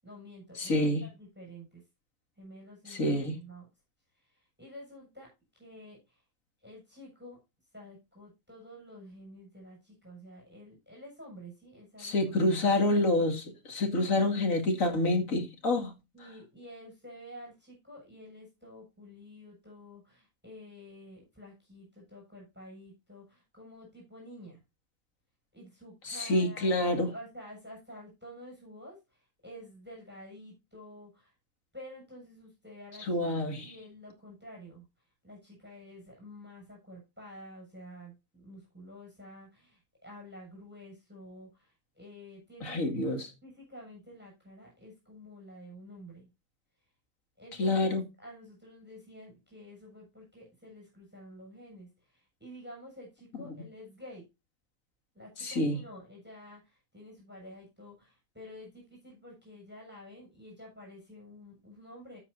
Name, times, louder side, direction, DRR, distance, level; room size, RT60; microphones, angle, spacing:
voice 1, 0.0-1.8 2.4-3.7 4.1-5.3 5.5-6.2 6.6-7.4 7.7-12.3 14.0-14.3 16.1-24.6 25.5-31.3 31.7-42.8 43.4-46.3 47.4-54.2 55.1-62.2, equal, 5° right, 6.9 m, -50 dB
voice 2, 0.5-1.0 2.9-3.4 12.0-15.9 26.0-27.1 33.0-33.7 42.6-43.3 47.6-48.0 55.4-55.8, left 2 dB, 60° left, 2.8 m, -28 dB
13.0 x 8.0 x 2.7 m
omnidirectional pair, 1.6 m